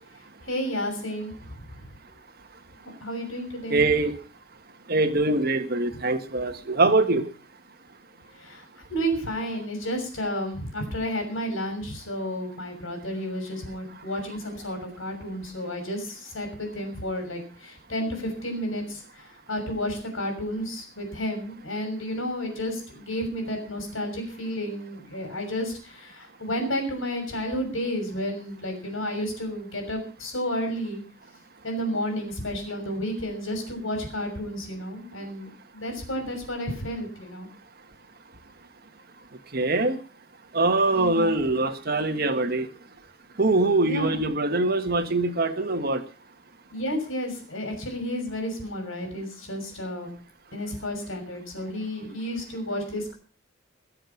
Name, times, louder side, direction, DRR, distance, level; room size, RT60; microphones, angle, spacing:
voice 1, 0.5-1.3 1.7-1.9 3.0-3.8 8.4-8.6 8.9-31.0 31.6-37.5 40.9-41.3 43.8-44.2 46.7-50.1 50.5-53.1, equal, 75° left, 4 dB, 6.4 m, -31 dB
voice 2, 3.7-4.1 4.9-7.2 39.5-40.0 40.5-42.7 43.4-46.0, right 2 dB, 50° right, 7 dB, 1.6 m, -23 dB
21.5 x 7.8 x 5.9 m, 0.39 s
head